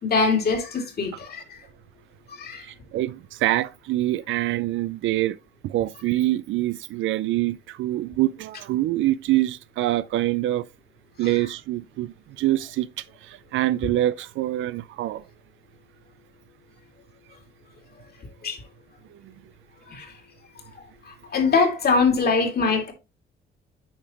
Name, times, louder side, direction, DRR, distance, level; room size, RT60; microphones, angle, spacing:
voice 1, 0.0-1.6 2.3-2.7 11.2-11.3 18.4-18.6 19.9-20.1 21.0-22.9, left 4 dB, 50° left, 2.3 m, -23 dB
voice 2, 2.6-5.4 5.6-10.7 11.2-15.2 19.1-19.3, right 15 dB, 80° right, 0.4 m, -25 dB
8.6 x 4.9 x 2.9 m
cardioid pair, 90°, 20 cm